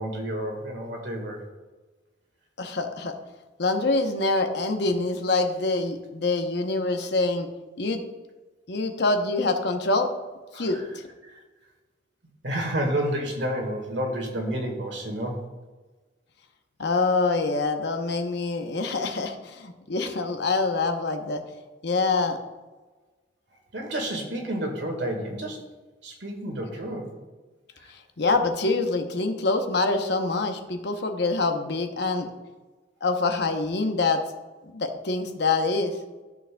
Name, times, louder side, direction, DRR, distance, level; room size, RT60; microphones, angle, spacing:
voice 1, 0.0-1.5 10.5-10.8 11.2-11.4 12.4-15.4 23.7-25.6 26.0-27.1 27.8-27.9, right 1 dB, 65° right, 2 dB, 1.7 m, -30 dB
voice 2, 2.6-3.1 3.6-7.5 7.8-8.0 8.7-10.1 10.5-10.8 16.8-21.4 21.8-22.4 27.9-32.3 33.0-34.2 34.7-36.0, left 3 dB, 60° left, 5 dB, 0.8 m, -25 dB
13.5 x 6.7 x 2.2 m, 1.3 s
head